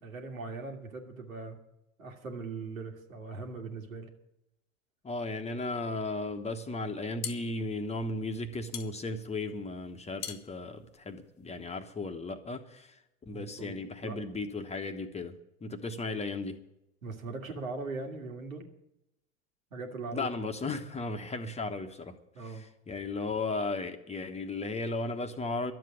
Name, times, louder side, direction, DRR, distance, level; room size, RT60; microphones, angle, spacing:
voice 1, 0.0-1.6 2.0-4.1 13.3-14.2 17.0-18.7 19.7-20.3 22.3-22.6, right 3 dB, 80° right, 3 dB, 2.1 m, -40 dB
voice 2, 5.0-13.0 13.3-16.6 20.1-25.7, left 3 dB, 15° left, 7 dB, 1.1 m, -35 dB
sound 1, 6.9-11.8, left 10 dB, 45° left, 1.3 m, -44 dB
12.0 x 7.7 x 10.0 m, 0.85 s
figure-of-eight pair, 85°, 40 cm